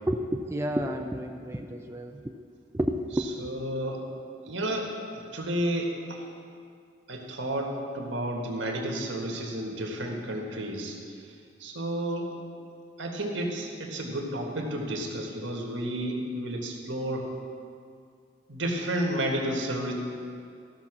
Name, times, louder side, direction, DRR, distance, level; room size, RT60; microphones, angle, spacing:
voice 1, 0.1-2.4 2.7-3.3 4.7-4.8, equal, 15° right, 4 dB, 0.4 m, -31 dB
voice 2, 3.4-4.0 4.4-6.2 7.1-11.0 11.6-12.3 13.0-17.3 18.5-19.9, right 1 dB, 80° right, 1 dB, 1.6 m, -31 dB
14.5 x 5.8 x 6.0 m, 2.3 s
head